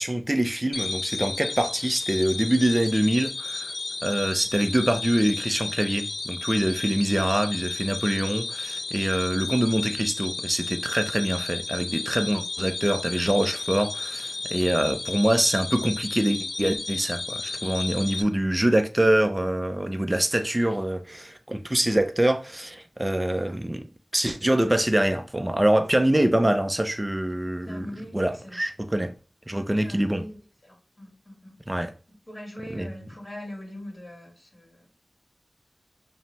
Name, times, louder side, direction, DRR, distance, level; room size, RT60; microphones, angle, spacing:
voice 1, 0.0-3.7 4.0-23.8 24.1-29.1 29.5-30.2 31.7-31.9 32.7-33.0, right 1 dB, 20° right, 0.5 m, -25 dB
sound 1, 0.7-18.2, left 3 dB, 55° left, 0.3 m, -33 dB
voice 2, 27.7-28.6 29.8-31.6 32.3-34.9, left 1 dB, 20° left, 2.2 m, -42 dB
5.4 x 2.1 x 3.3 m
wide cardioid pair, 55°, 0 cm